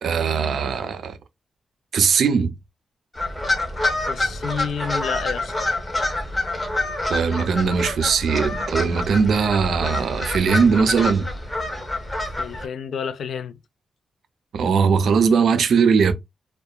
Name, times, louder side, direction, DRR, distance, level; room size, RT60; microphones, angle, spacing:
voice 1, 0.0-1.2 1.9-2.5 7.1-11.3 14.5-16.1, right 6 dB, 65° right, 0.4 m, -20 dB
sound 1, 3.1-12.7, left 2 dB, 15° left, 0.6 m, -27 dB
voice 2, 4.1-5.5 12.4-13.6, left 7 dB, 70° left, 0.3 m, -30 dB
2.8 x 2.2 x 2.2 m
wide cardioid pair, 150°, 0 cm